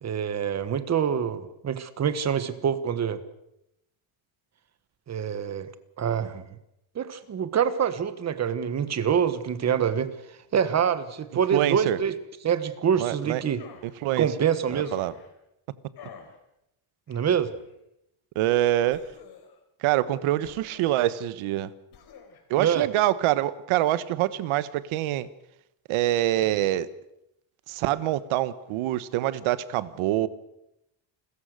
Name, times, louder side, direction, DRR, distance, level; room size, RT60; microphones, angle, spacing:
voice 1, 0.0-3.2 5.1-5.7 6.0-6.4 6.9-10.1 10.5-12.1 12.4-13.6 14.2-14.9 17.1-17.5 22.6-22.9, right 8 dB, 30° right, 12 dB, 1.4 m, -25 dB
voice 2, 11.5-12.0 13.0-13.4 13.8-14.3 14.7-15.1 18.3-19.0 19.8-21.7 22.5-25.3 25.9-26.9 27.7-30.3, right 14 dB, 80° right, 15 dB, 1.3 m, -25 dB
sound 1, 13.6-13.9 14.7-15.3 16.0-16.4 17.1-17.7 18.9-19.6 20.4-21.1 21.9-22.4, left 6 dB, 50° left, 4.5 m, -49 dB
29.5 x 14.5 x 6.6 m, 0.84 s
cardioid pair, 155°, 49 cm